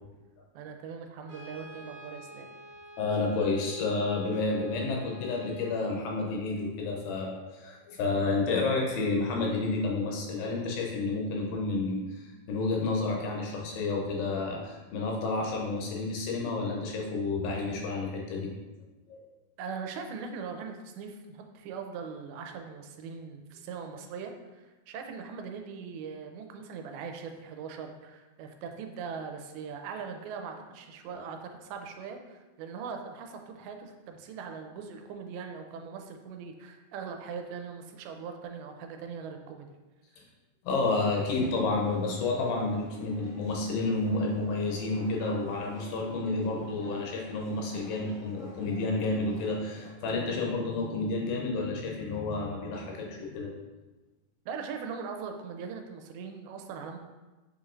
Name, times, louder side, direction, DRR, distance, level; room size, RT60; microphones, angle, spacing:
voice 1, 0.5-2.5 19.6-39.7 54.5-57.0, right 6 dB, 90° right, 4 dB, 2.4 m, -40 dB
Brass instrument, 1.2-5.8, right 1 dB, 55° right, 2.2 m, -49 dB
voice 2, 3.0-18.5 19.1-19.2 31.1-31.2 40.2-40.3 40.7-53.5, left 3 dB, 80° left, 0 dB, 2.3 m, -30 dB
sound 1, 40.9-49.9, left 2 dB, 50° left, 1.2 m, -50 dB
6.8 x 3.1 x 2.4 m, 1.2 s
omnidirectional pair, 4.3 m